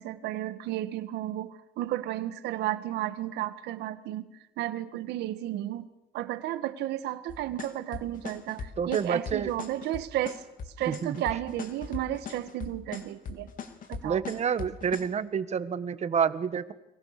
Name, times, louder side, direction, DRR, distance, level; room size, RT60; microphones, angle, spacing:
voice 1, 0.0-4.3 4.6-5.9 6.1-10.4 10.8-13.5 13.9-14.2, right 14 dB, 80° right, 11 dB, 1.8 m, -33 dB
sound 1, 7.3-15.0, left 5 dB, 55° left, 3.4 m, -39 dB
voice 2, 8.8-9.5 10.9-11.2 14.0-16.7, right 7 dB, 40° right, 12 dB, 1.7 m, -28 dB
30.0 x 23.0 x 6.8 m, 0.93 s
cardioid pair, 110°, 17 cm